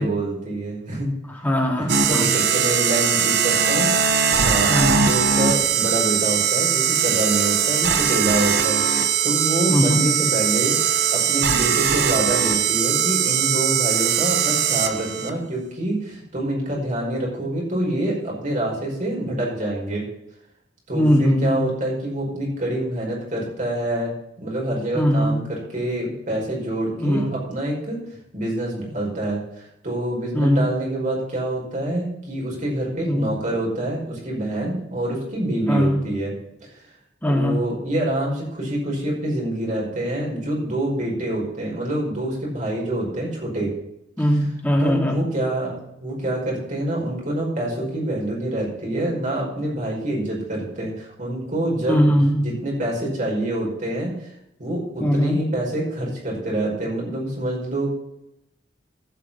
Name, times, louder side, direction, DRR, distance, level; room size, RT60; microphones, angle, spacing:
voice 1, 0.0-1.1 1.8-4.7 5.0-20.0 20.9-24.1 24.4-28.0 28.3-36.3 36.6-36.7 37.3-43.7 44.8-52.1 52.4-54.1 54.6-57.9, right 1 dB, 45° right, -2 dB, 5.5 m, -26 dB
voice 2, 1.3-2.3 4.7-5.1 9.7-10.0 20.9-21.6 24.9-25.4 27.0-27.3 30.3-30.7 33.0-33.3 35.7-36.0 37.2-37.6 44.2-45.2 51.9-52.5 55.0-55.4, equal, 10° left, -1 dB, 2.9 m, -20 dB
sound 1, 1.9-15.3, right 7 dB, 60° right, 1.0 m, -20 dB
16.0 x 6.3 x 5.7 m, 0.82 s
head